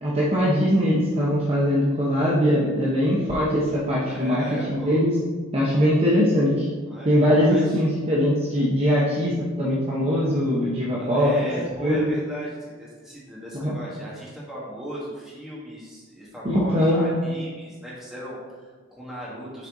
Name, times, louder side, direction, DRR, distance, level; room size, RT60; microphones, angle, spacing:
voice 1, 0.0-5.1 5.5-6.7 7.0-11.3 11.8-12.1 13.5-13.8 16.4-17.1, equal, 30° right, -6 dB, 0.9 m, -21 dB
voice 2, 4.1-5.0 6.9-7.8 11.0-19.7, equal, ahead, -7 dB, 1.8 m, -37 dB
7.2 x 4.4 x 3.9 m, 1.4 s
head